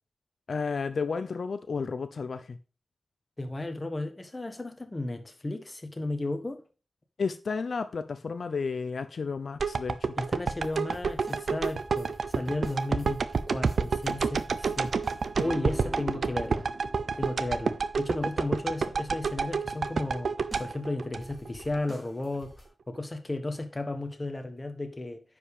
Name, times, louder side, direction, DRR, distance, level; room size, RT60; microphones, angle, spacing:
voice 1, 0.5-2.6 7.2-10.1, left 5 dB, 70° left, 0.6 m, -32 dB
voice 2, 3.4-6.6 10.2-16.7 17.2-20.3 20.6-22.5 22.9-25.2, left 2 dB, 25° left, 1.3 m, -34 dB
sound 1, 9.6-21.8 22.2-22.3, right 5 dB, 80° right, 0.6 m, -29 dB
sound 2, 10.6-16.3 20.5-20.8 21.2-22.7, equal, 15° right, 3.3 m, -50 dB
sound 3, 15.4-17.8, right 2 dB, 45° right, 1.0 m, -42 dB
10.0 x 5.2 x 5.0 m
wide cardioid pair, 120°, 0 cm